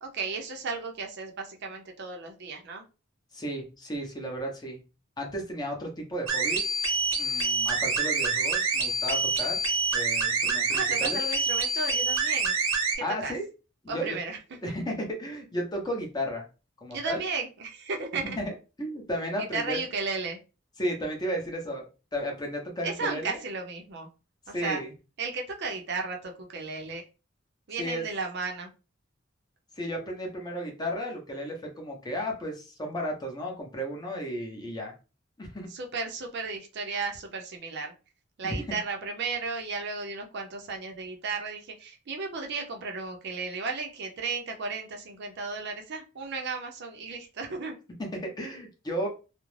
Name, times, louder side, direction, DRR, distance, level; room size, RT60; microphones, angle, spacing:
voice 1, 0.0-2.8 10.7-12.6 13.0-13.3 13.9-14.7 16.9-18.4 19.4-20.4 22.8-24.1 24.5-24.8 25.2-27.0 27.7-28.7 35.7-37.9 38.4-47.8, right 4 dB, 60° right, 3 dB, 0.5 m, -34 dB
voice 2, 3.3-4.8 5.2-6.7 7.2-9.6 9.9-11.2 13.0-13.5 13.8-14.2 14.6-16.4 16.8-17.2 18.4-18.5 18.8-19.8 20.8-21.9 22.1-23.4 24.5-24.9 27.8-28.0 29.8-34.9 35.4-35.7 38.4-38.8 48.0-49.1, equal, 20° left, 1 dB, 0.7 m, -33 dB
sound 1, 6.3-13.0, right 3 dB, 90° right, 0.8 m, -27 dB
2.4 x 2.0 x 3.1 m, 0.31 s
head